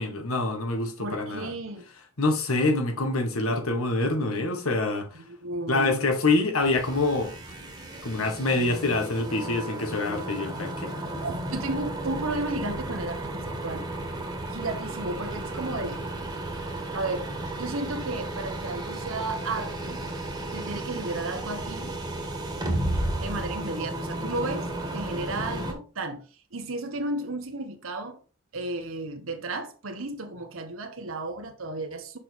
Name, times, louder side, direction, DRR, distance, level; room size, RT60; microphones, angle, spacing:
voice 1, 0.0-1.5 2.2-5.2 5.7-7.3 8.0-10.9, left 2 dB, 90° left, 1.6 m, -26 dB
voice 2, 1.0-1.9 5.1-6.1 11.2-13.8 14.5-16.0 16.9-17.3 17.6-20.0 20.5-21.9 23.0-24.7 24.9-26.2 26.5-28.2 28.5-32.2, right 2 dB, 75° right, 1.0 m, -33 dB
sound 1, 6.6-25.7, right 1 dB, 20° right, 1.5 m, -33 dB
6.7 x 5.6 x 3.6 m
head